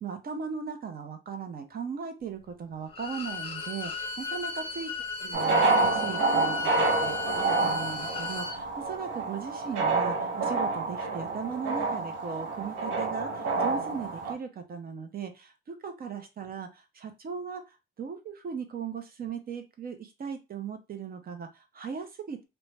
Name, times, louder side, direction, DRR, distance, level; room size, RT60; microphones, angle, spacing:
voice 1, 0.0-4.9 5.2-22.4, right 6 dB, 50° right, 7 dB, 0.6 m, -38 dB
Bowed string instrument, 2.9-8.6, left 4 dB, 30° left, 0.6 m, -35 dB
sound 1, 5.3-14.3, right 3 dB, 85° right, 0.8 m, -28 dB
2.5 x 2.2 x 3.2 m, 0.26 s
cardioid pair, 90°, 20 cm